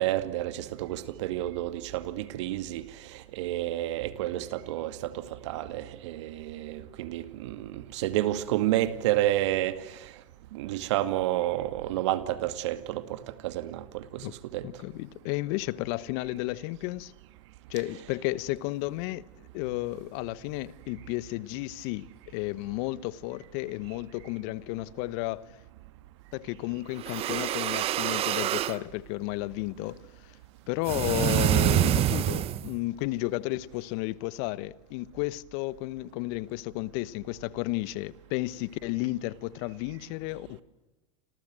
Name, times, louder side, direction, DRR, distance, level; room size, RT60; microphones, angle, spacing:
voice 1, 0.0-10.1 10.5-14.7, right 14 dB, 65° right, 2.2 m, -30 dB
voice 2, 14.6-17.1 17.7-19.3 19.5-25.5 26.3-30.3 30.7-40.6, left 19 dB, 55° left, 1.2 m, -33 dB
sound 1, 27.0-28.8 30.9-32.7, right 12 dB, 40° right, 1.3 m, -26 dB
29.0 x 26.5 x 7.7 m
hypercardioid pair, 100°, 16 cm